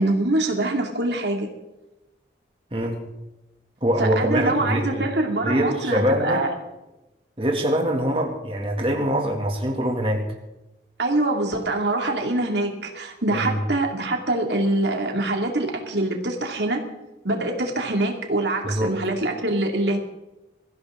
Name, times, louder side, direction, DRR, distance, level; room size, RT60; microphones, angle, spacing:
voice 1, 0.0-1.5 4.0-6.5 11.0-16.8 17.2-20.0, right 2 dB, 75° right, 2 dB, 2.7 m, -24 dB
voice 2, 3.8-5.0 5.4-6.4 7.4-10.3 13.3-13.6 18.6-18.9, equal, 30° right, 1 dB, 2.5 m, -23 dB
24.0 x 15.5 x 3.9 m, 0.97 s
head